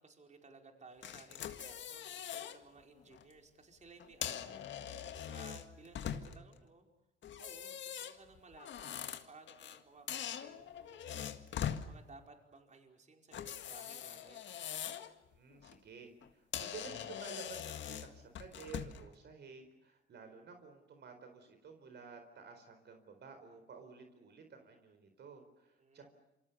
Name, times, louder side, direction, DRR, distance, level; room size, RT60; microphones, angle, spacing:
voice 1, 0.0-6.9 7.4-14.6 25.8-26.1, right 3 dB, 35° right, 3 dB, 5.0 m, -59 dB
sound 1, 1.0-2.6 3.0-3.2 4.0-6.5 7.2-9.8 10.1-11.9 13.3-15.1 15.5-15.8 16.2-16.3 16.5-19.1, left 9 dB, 70° left, 2.0 m, -42 dB
voice 2, 15.3-26.1, right 5 dB, 60° right, 6 dB, 4.4 m, -53 dB
28.0 x 25.0 x 7.0 m, 0.94 s
cardioid pair, 90°, 20 cm